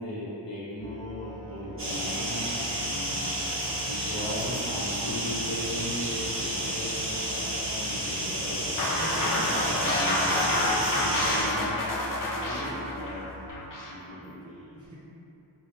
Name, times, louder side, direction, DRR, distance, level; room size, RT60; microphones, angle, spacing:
voice 1, 0.0-3.2 3.8-12.4 12.7-13.3 13.9-14.3, equal, 70° left, -9 dB, 1.1 m, -37 dB
Musical instrument, 0.8-13.5, left 1 dB, 75° right, 0.7 m, -44 dB
sound 1, 1.8-11.4, right 1 dB, 30° right, 1.1 m, -31 dB
sound 2, 8.8-13.9, left 1 dB, 45° left, 0.6 m, -28 dB
voice 2, 8.9-9.6 12.3-12.9 13.6-13.7 14.2-14.9, equal, 10° right, -9 dB, 0.5 m, -42 dB
2.7 x 2.6 x 3.1 m, 3.0 s
cardioid pair, 65°, 45 cm